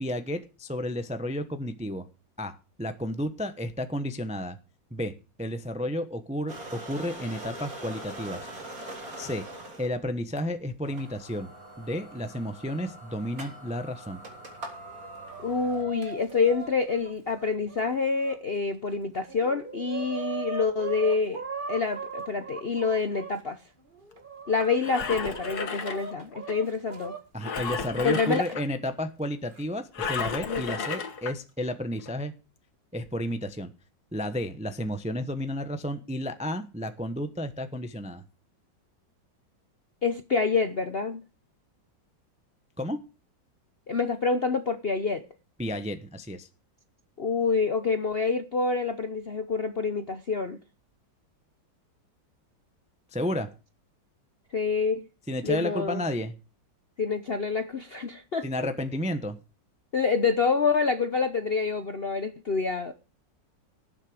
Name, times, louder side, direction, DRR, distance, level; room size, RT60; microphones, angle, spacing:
voice 1, 0.0-2.1 2.4-4.6 4.9-5.1 5.4-8.5 9.2-9.4 9.8-11.5 11.8-14.2 27.3-32.3 32.9-33.7 34.1-38.2 42.8-43.0 45.6-46.5 53.1-53.5 55.3-56.3 58.4-59.4, equal, 5° right, 0.7 m, -32 dB
sound 1, 6.5-9.9 10.4-10.5 10.9-16.3, right 2 dB, 50° right, 4.1 m, -42 dB
Chicken rooster, 14.9-18.4 18.9-19.0 19.3-23.3 23.9-27.2 28.4-28.5 29.5-29.6 30.6-31.0, right 4 dB, 30° right, 2.2 m, -39 dB
voice 2, 15.4-21.4 21.7-23.6 24.5-27.1 28.0-28.5 30.5-30.8 40.0-41.2 43.9-45.2 47.2-50.6 54.5-55.1 55.4-56.0 57.0-58.4 59.9-62.9, left 4 dB, 45° left, 0.9 m, -27 dB
Engine, 24.6-26.5 27.4-28.6 29.9-31.3 32.0-32.1, left 6 dB, 60° left, 1.9 m, -33 dB
18.0 x 7.6 x 5.0 m
omnidirectional pair, 1.9 m